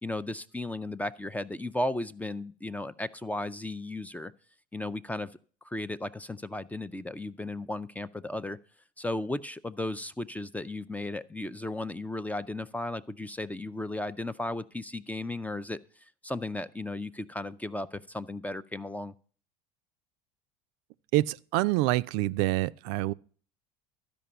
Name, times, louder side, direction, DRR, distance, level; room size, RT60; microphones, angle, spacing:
voice 1, 0.0-4.3 4.7-5.3 5.6-8.6 9.0-19.1, left 2 dB, 10° left, 0.4 m, -35 dB
voice 2, 21.1-23.1, right 17 dB, 65° right, 0.4 m, -26 dB
12.5 x 5.2 x 6.9 m
hypercardioid pair, 85°, 20 cm